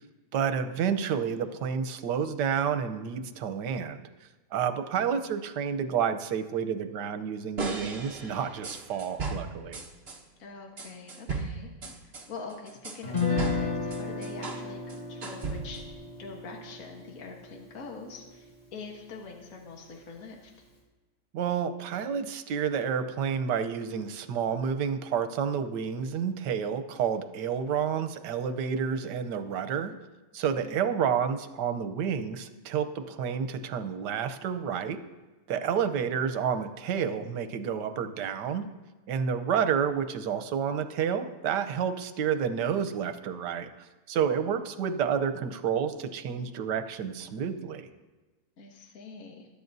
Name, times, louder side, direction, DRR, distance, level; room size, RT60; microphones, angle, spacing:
voice 1, 0.3-4.0 4.5-9.8 21.3-29.9 30.3-35.0 35.5-38.7 39.1-43.7 44.1-47.9, right 7 dB, 85° right, 9 dB, 1.4 m, -30 dB
sound 1, 7.6-10.2 10.8-14.6 14.9-15.9, right 3 dB, 40° right, 1.4 m, -36 dB
voice 2, 10.4-12.0 12.3-15.8 16.2-20.5 30.6-30.7 44.5-44.6 48.6-49.5, left 4 dB, 55° left, 0 dB, 1.6 m, -44 dB
Guitar, 13.0-19.1, left 5 dB, 25° left, 1.5 m, -34 dB
21.0 x 10.0 x 2.7 m, 1.2 s
omnidirectional pair, 1.8 m